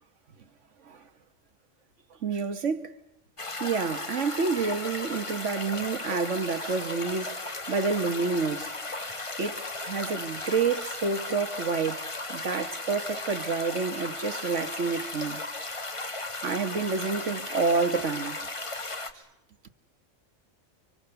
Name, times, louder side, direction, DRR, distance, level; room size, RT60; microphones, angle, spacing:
voice 1, 2.2-2.9 3.6-7.3 7.7-8.7 9.4-12.0 12.3-15.4 16.4-18.4, right 5 dB, 65° right, 1.7 m, -29 dB
sound 1, 3.4-19.1, left 2 dB, 25° left, 1.4 m, -36 dB
30.0 x 24.5 x 6.9 m
omnidirectional pair, 1.4 m